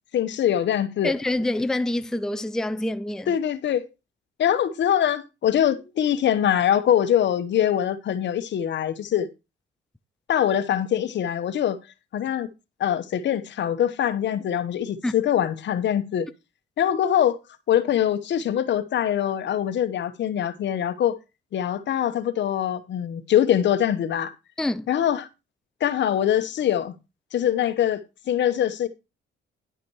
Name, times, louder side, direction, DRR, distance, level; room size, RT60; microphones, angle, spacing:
voice 1, 0.1-1.1 3.3-3.8 4.4-9.3 10.3-11.8 12.1-12.5 12.8-16.3 16.8-17.4 17.7-21.2 21.5-24.3 24.9-25.3 25.8-26.9 27.3-28.0 28.3-28.9, left 10 dB, 65° left, 1.0 m, -23 dB
voice 2, 1.0-3.3 15.0-15.2 24.6-24.9, left 1 dB, 5° left, 0.5 m, -26 dB
11.0 x 5.9 x 4.6 m
cardioid pair, 90°, 20 cm